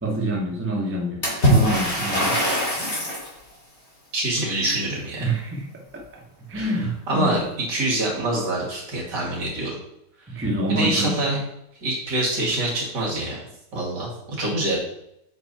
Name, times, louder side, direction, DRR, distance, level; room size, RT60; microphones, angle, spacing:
voice 1, 0.0-2.4 5.2-7.4 10.3-11.2, right 1 dB, 15° right, -1 dB, 0.4 m, -27 dB
Water / Splash splatter, 1.2-3.3, equal, 30° left, 2.5 m, -21 dB
voice 2, 4.1-5.3 6.5-6.8 7.1-9.8 10.3-10.4 10.7-11.4 11.8-13.4 13.7-14.8, right 1 dB, 55° right, -4 dB, 2.8 m, -25 dB
7.7 x 4.7 x 4.1 m, 0.80 s
omnidirectional pair, 2.3 m